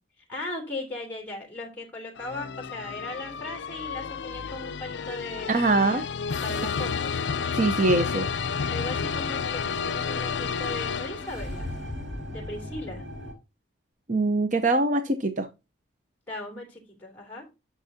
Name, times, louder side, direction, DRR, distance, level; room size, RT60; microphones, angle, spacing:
voice 1, 0.3-6.0 6.4-7.2 8.7-11.7 12.3-13.0 16.3-17.4, left 2 dB, 10° left, 0 dB, 2.8 m, -38 dB
sound 1, 2.2-11.7, left 6 dB, 65° left, 0.4 m, -31 dB
voice 2, 5.5-6.0 7.6-8.3 14.1-15.5, right 2 dB, 40° right, 8 dB, 0.7 m, -23 dB
sound 2, 8.0-13.3, left 1 dB, 75° right, 4.9 m, -39 dB
10.5 x 6.1 x 2.7 m, 0.27 s
head